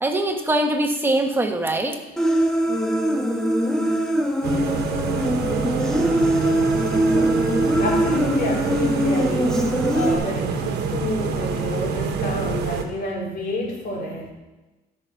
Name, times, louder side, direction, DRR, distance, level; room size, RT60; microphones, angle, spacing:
voice 1, 0.0-2.0, right 1 dB, 15° right, 4 dB, 1.4 m, -22 dB
Human voice, 2.2-10.1, right 1 dB, 5° left, 1.5 m, -22 dB
sound 1, 4.4-12.8, right 6 dB, 75° right, 1.3 m, -26 dB
voice 2, 7.8-14.3, left 2 dB, 60° left, -1 dB, 3.6 m, -29 dB
13.0 x 6.0 x 5.9 m, 1.1 s
cardioid pair, 110°, 17 cm